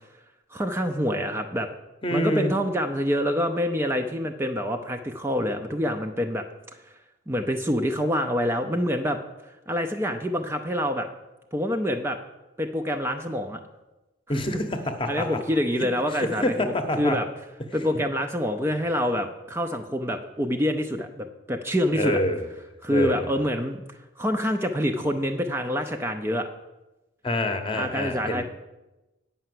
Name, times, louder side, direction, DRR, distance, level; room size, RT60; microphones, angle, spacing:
voice 1, 0.5-1.7 2.1-6.4 7.3-9.2 9.7-11.1 11.5-12.2 12.6-13.6 15.1-17.3 17.7-22.2 22.8-26.5 27.7-28.4, equal, 10° right, 4 dB, 0.5 m, -26 dB
voice 2, 2.0-2.5 14.3-15.3 16.1-17.2 22.0-22.4 22.9-23.3 27.2-28.4, left 1 dB, 25° left, 7 dB, 0.9 m, -26 dB
8.8 x 5.6 x 7.6 m, 1.0 s
head